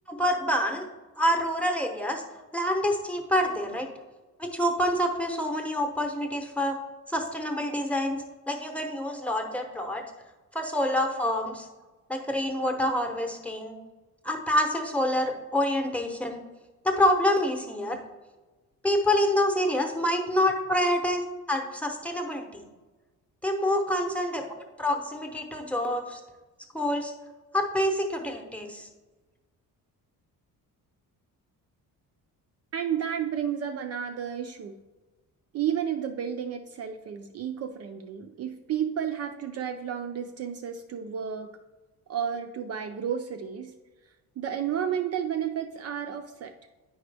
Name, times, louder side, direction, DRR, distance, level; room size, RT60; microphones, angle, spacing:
voice 1, 0.1-0.9 1.2-2.2 2.5-3.9 4.4-6.7 7.1-8.2 8.5-10.0 10.5-11.7 12.1-13.7 14.2-16.4 16.8-18.0 18.8-21.2 21.5-22.6 23.4-24.4 24.8-26.2 26.7-27.1 27.5-28.9, left 1 dB, 5° left, 3 dB, 0.8 m, -27 dB
voice 2, 32.7-34.7 35.5-41.5 42.1-43.7 44.4-46.5, right 8 dB, 45° right, 6 dB, 0.5 m, -32 dB
9.3 x 5.0 x 3.4 m, 1.2 s
cardioid pair, 155°, 36 cm